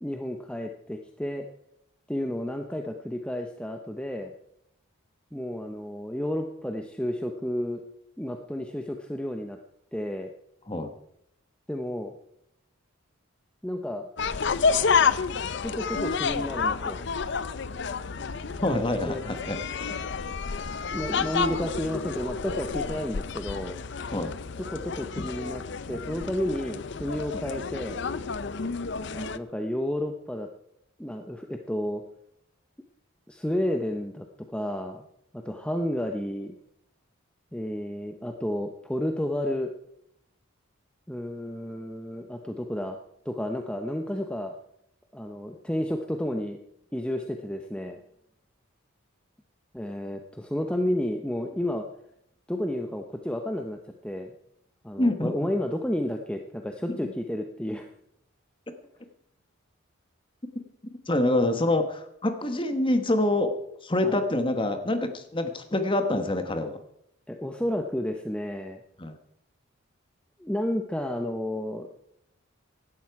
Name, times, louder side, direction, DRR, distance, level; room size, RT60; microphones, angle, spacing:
voice 1, 0.0-1.5 2.1-4.3 5.3-7.8 8.2-9.6 9.9-10.3 11.7-12.1 13.6-14.1 15.6-17.0 19.1-19.2 20.9-23.8 24.6-28.0 29.1-30.5 31.0-32.0 33.3-34.3 34.5-35.1 35.3-36.5 37.5-39.7 41.1-43.0 43.2-44.5 45.1-46.6 46.9-48.0 49.7-51.9 52.5-54.3 54.8-57.8 64.0-64.2 67.3-68.8 70.4-71.9, left 1 dB, 5° left, 4 dB, 0.7 m, -31 dB
sound 1, 14.2-29.4, left 5 dB, 55° left, 0.6 m, -30 dB
voice 2, 18.6-19.9 20.5-20.6 24.1-24.3 27.3-27.4 55.0-55.3 56.9-57.1 61.1-63.5 63.8-66.8 69.0-69.1, left 1 dB, 25° left, 7 dB, 1.3 m, -26 dB
16.5 x 12.0 x 4.8 m, 0.75 s
head